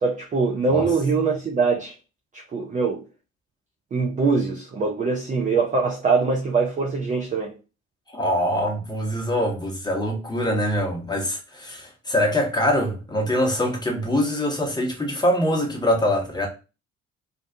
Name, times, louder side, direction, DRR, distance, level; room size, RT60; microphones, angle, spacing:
voice 1, 0.0-1.9 2.3-3.0 3.9-7.5, right 4 dB, 20° right, 0.4 m, -23 dB
voice 2, 8.1-16.5, equal, 10° left, 0.9 m, -24 dB
2.5 x 2.2 x 2.6 m
figure-of-eight pair, 50°, 40 cm